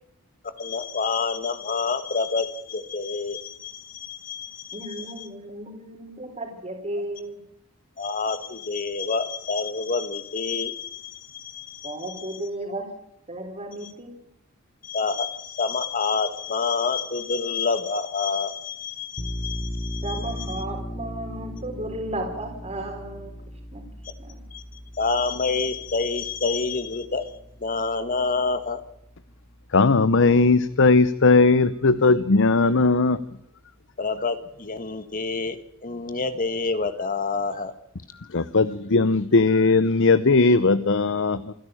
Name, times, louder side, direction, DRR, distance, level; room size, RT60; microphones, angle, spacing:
voice 1, 0.6-5.3 8.0-12.4 13.8-13.9 14.8-20.6 24.5-24.6 24.9-27.2 27.6-28.8 34.0-35.6 35.8-37.7, left 4 dB, 40° left, 11 dB, 1.6 m, -28 dB
voice 2, 4.7-7.4 11.8-12.9 13.3-14.1 20.0-23.3 23.7-23.8 24.2-24.4, right 1 dB, 30° right, 1 dB, 3.9 m, -34 dB
sound 1, 19.2-30.5, equal, 15° left, 1.2 m, -37 dB
voice 3, 29.7-33.2 38.3-41.5, left 3 dB, 60° left, 16 dB, 0.8 m, -18 dB
28.0 x 11.0 x 8.9 m, 0.78 s
head